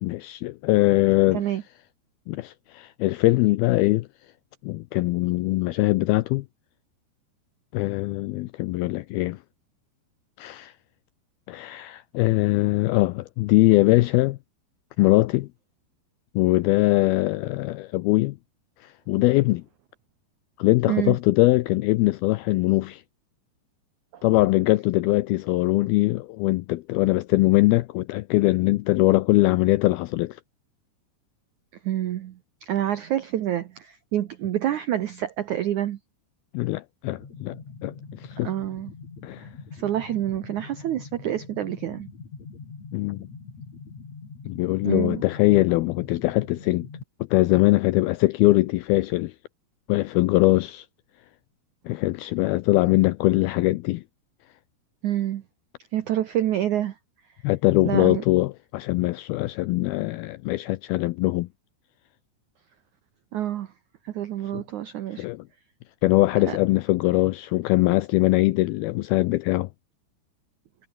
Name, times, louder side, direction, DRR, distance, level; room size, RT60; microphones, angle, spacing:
voice 1, 0.0-1.4 2.3-4.1 4.6-6.5 7.7-9.4 10.4-10.7 11.5-14.4 15.0-15.5 16.4-18.4 18.8-19.6 20.6-23.0 24.2-30.4 36.5-38.5 39.2-39.5 42.9-43.3 44.5-46.9 47.3-49.3 49.9-50.9 51.9-54.0 57.4-61.5 64.5-64.6 65.2-65.4 66.0-69.7, left 19 dB, 85° left, 2.2 m, -22 dB
voice 2, 20.8-21.2 24.1-24.2 31.8-36.0 38.4-38.9 39.7-42.1 44.8-45.2 55.0-55.4 55.9-56.9 57.8-58.2 63.3-63.7 64.0-65.2 66.5-66.6, right 12 dB, 80° right, 1.7 m, -27 dB
sound 1, 37.0-47.0, left 5 dB, 40° left, 5.5 m, -43 dB
omnidirectional pair, 5.0 m